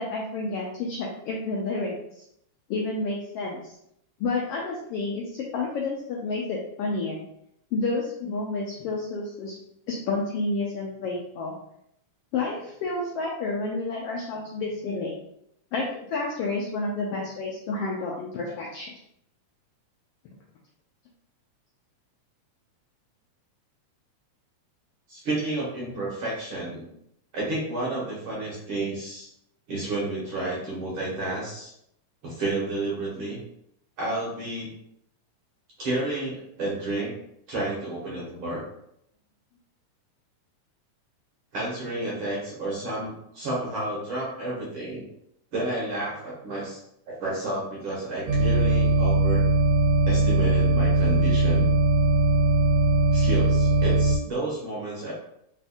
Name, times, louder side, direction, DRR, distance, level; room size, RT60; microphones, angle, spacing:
voice 1, 0.0-2.2 2.7-3.8 4.2-7.2 7.7-9.6 9.9-11.5 12.3-15.2 15.7-18.9, left 3 dB, 85° left, -2 dB, 1.3 m, -30 dB
voice 2, 25.1-26.9 27.3-29.3 29.7-31.7 32.2-33.4 34.0-34.7 35.8-37.1 37.5-38.6 41.5-45.0 45.5-46.8 47.1-49.5 50.1-51.7 53.1-55.1, right 2 dB, 60° right, -6 dB, 1.5 m, -31 dB
sound 1, 48.3-54.2, right 2 dB, 80° right, 1.9 m, -20 dB
4.3 x 4.2 x 2.4 m, 0.75 s
omnidirectional pair, 3.4 m